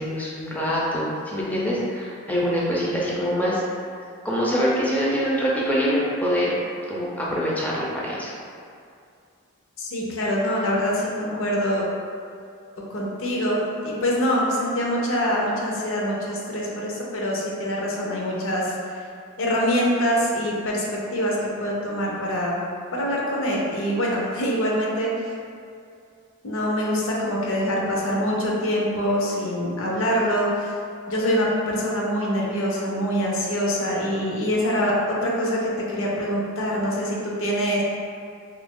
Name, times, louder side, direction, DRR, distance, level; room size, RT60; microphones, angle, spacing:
voice 1, 0.0-3.6 4.2-6.5 6.9-8.3, equal, 5° left, -6 dB, 0.4 m, -24 dB
voice 2, 9.8-11.9 12.9-19.0 19.4-22.6 22.9-25.1 26.4-30.7 31.1-37.8, equal, 60° left, -3 dB, 0.6 m, -24 dB
2.8 x 2.5 x 3.5 m, 2.4 s
head